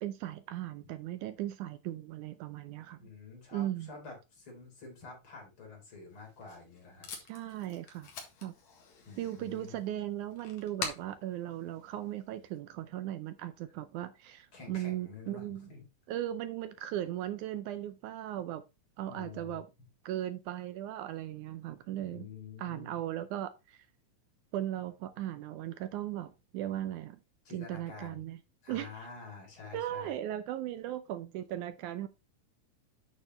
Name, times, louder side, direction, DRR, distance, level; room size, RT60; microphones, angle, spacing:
voice 1, 0.0-3.1 3.5-3.9 7.3-8.1 8.4-8.6 9.2-15.7 16.1-18.6 19.0-19.7 20.1-22.3 22.6-23.9 24.5-27.2 27.5-28.4 28.7-29.1 29.7-32.1, right 12 dB, 75° right, 1.9 m, -37 dB
voice 2, 3.0-7.1 9.1-9.8 14.5-15.9 19.0-19.6 22.1-23.0 27.4-28.2 28.6-30.1, left 4 dB, 40° left, 4.5 m, -48 dB
Packing tape duct tape, 6.1-12.6, left 5 dB, 60° left, 3.0 m, -46 dB
8.9 x 6.4 x 3.1 m
omnidirectional pair, 3.8 m